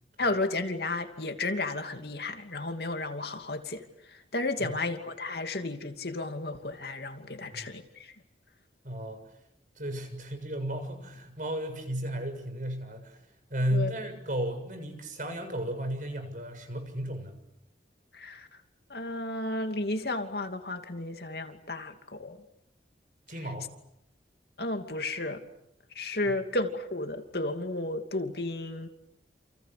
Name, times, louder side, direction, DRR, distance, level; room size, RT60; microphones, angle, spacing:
voice 1, 0.2-3.9 4.1-8.1 13.7-13.9 18.1-18.5 18.9-22.4 24.6-25.4 25.9-28.9, left 2 dB, 60° left, 6 dB, 2.8 m, -33 dB
voice 2, 8.8-9.2 9.8-13.2 13.5-17.4 23.3-23.7 26.3-26.4, equal, 45° right, 7 dB, 7.0 m, -34 dB
29.5 x 29.5 x 6.9 m, 0.80 s
head